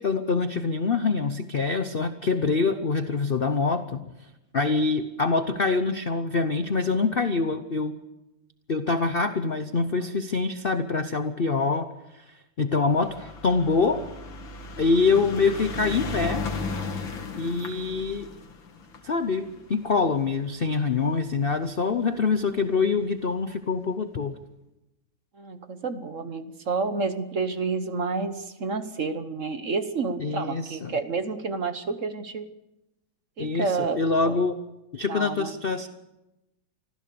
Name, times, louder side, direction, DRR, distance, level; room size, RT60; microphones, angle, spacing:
voice 1, 0.0-4.0 4.5-8.0 8.7-11.9 12.1-14.0 14.8-16.4 17.4-18.3 19.0-24.4 30.2-30.9 33.4-34.6 34.9-35.9, left 4 dB, 50° left, 9 dB, 0.7 m, -25 dB
sound 1, 12.9-21.4 22.2-22.3 22.5-22.6 22.8-22.9, left 3 dB, 85° left, 2.6 m, -35 dB
voice 2, 25.4-32.4 33.4-34.4 35.1-35.5, right 4 dB, 45° right, 10 dB, 1.3 m, -30 dB
25.0 x 15.0 x 6.9 m, 0.97 s
omnidirectional pair, 2.1 m